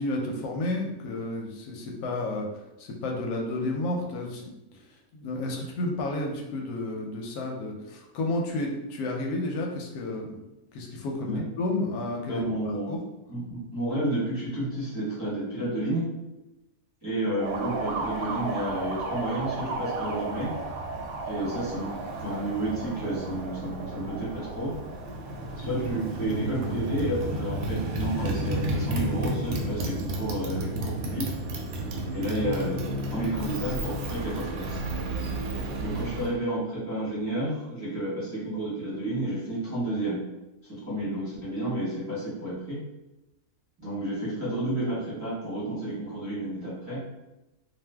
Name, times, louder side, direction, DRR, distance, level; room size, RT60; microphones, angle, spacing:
voice 1, 0.0-4.5 5.1-10.4 10.7-12.4 12.9-13.0, left 2 dB, 85° left, 0 dB, 1.1 m, -31 dB
voice 2, 12.3-13.0 13.3-16.1 17.0-20.5 21.2-21.9 22.2-24.7 25.6-31.4 32.1-32.8 33.1-34.8 35.7-40.2 40.6-42.8 43.8-47.0, right 1 dB, 15° right, -9 dB, 0.9 m, -31 dB
Motorcycle, 17.4-36.3, right 2 dB, 75° right, 1.0 m, -32 dB
2.5 x 2.4 x 3.3 m, 0.98 s
omnidirectional pair, 1.6 m